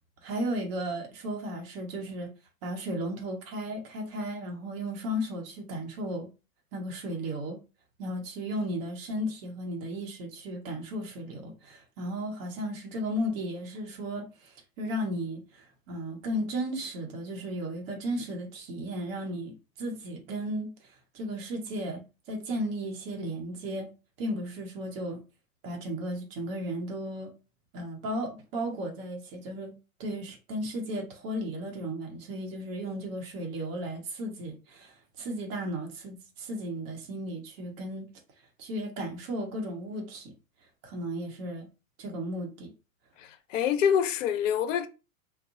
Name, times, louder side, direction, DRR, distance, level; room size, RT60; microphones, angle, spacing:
voice 1, 0.2-2.3 2.6-6.3 6.7-7.6 8.0-22.0 22.3-23.9 24.2-25.2 25.6-27.3 27.7-29.7 30.0-38.1 38.6-40.3 40.8-41.7 42.0-42.7, equal, 40° right, 0.9 m, -35 dB
voice 2, 43.2-44.9, left 8 dB, 60° left, 0.5 m, -26 dB
2.6 x 2.1 x 2.5 m
figure-of-eight pair, 105°, 44 cm